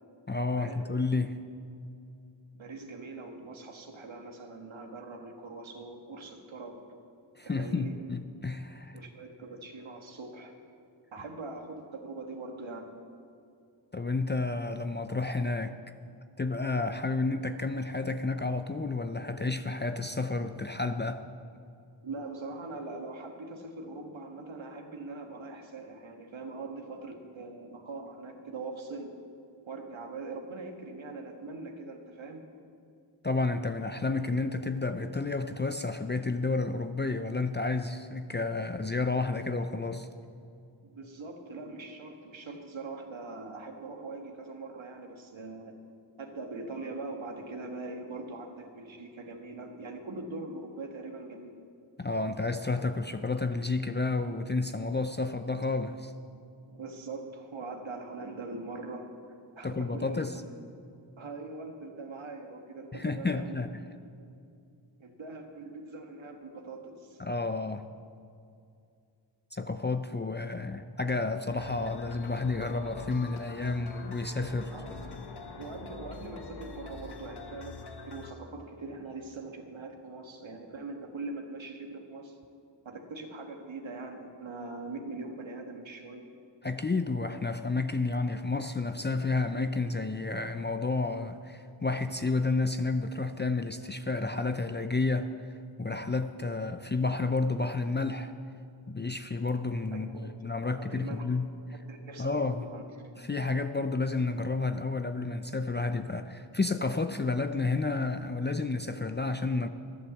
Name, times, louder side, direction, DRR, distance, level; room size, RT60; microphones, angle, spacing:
voice 1, 0.3-1.4 7.4-9.0 13.9-15.8 16.4-21.2 33.2-40.1 52.0-56.1 59.6-60.3 62.9-63.7 67.2-67.9 69.5-74.7 75.0-75.2 86.6-95.3 95.8-98.3 98.9-101.5 102.2-102.7 103.2-109.7, left 3 dB, 25° left, 8 dB, 0.5 m, -31 dB
voice 2, 2.5-6.8 7.4-8.0 8.9-10.5 11.1-12.9 22.0-29.2 29.7-32.4 40.8-45.8 46.2-51.5 56.7-59.1 59.6-60.3 61.2-63.5 65.0-67.2 74.7-75.2 75.6-82.4 82.8-86.3 100.1-100.3 100.6-101.2 101.9-102.8, right 3 dB, 85° right, 3 dB, 1.6 m, -42 dB
sound 1, 71.5-78.3, left 3 dB, 60° left, 1.1 m, -44 dB
11.5 x 11.0 x 7.2 m, 2.5 s
wide cardioid pair, 55°, 46 cm